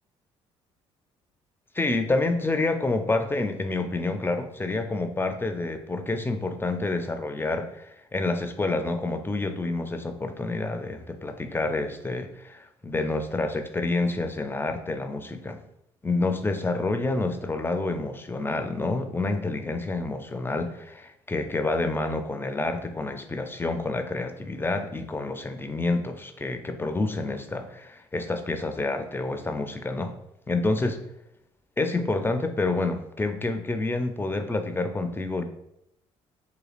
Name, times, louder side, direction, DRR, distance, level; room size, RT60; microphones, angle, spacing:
voice 1, 1.7-15.6 16.0-30.1 30.5-31.0 31.8-35.4, left 2 dB, 15° left, 7 dB, 0.4 m, -28 dB
4.1 x 2.7 x 2.4 m, 0.78 s
supercardioid pair, 65°, 13 cm